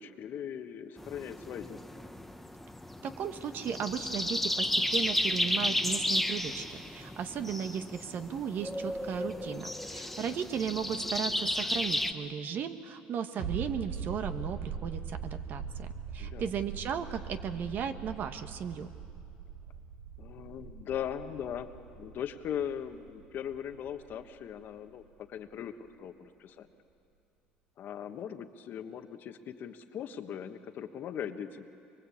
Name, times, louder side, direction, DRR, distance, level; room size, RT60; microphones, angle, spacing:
voice 1, 0.0-1.8 10.2-10.5 16.2-16.5 20.2-21.7 21.9-25.0 25.3-26.7 27.8-31.7, left 9 dB, 55° left, 8 dB, 1.4 m, -39 dB
sound 1, 1.0-12.1, left 1 dB, 5° left, 1.2 m, -33 dB
voice 2, 3.0-15.9 16.1-18.9, right 7 dB, 55° right, 8 dB, 1.5 m, -36 dB
sound 2, 13.4-24.7 25.0-25.1, right 6 dB, 85° right, 1.9 m, -42 dB
23.5 x 23.0 x 8.6 m, 2.5 s
supercardioid pair, 90°, 4 cm